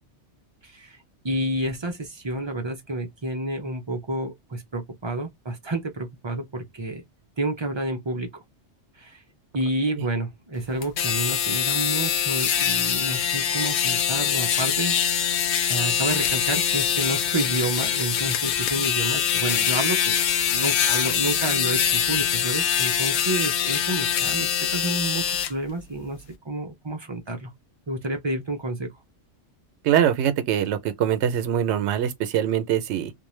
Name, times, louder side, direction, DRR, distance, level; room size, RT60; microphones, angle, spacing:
voice 1, 0.6-1.0 1.2-7.0 7.4-8.3 9.0-9.2 9.5-27.5 27.9-28.9, right 1 dB, 35° right, 0.4 m, -30 dB
sound 1, 10.8-25.5, left 8 dB, 75° left, 0.8 m, -24 dB
voice 2, 29.8-33.1, right 10 dB, 75° right, 0.8 m, -23 dB
2.6 x 2.1 x 3.0 m
omnidirectional pair, 1.2 m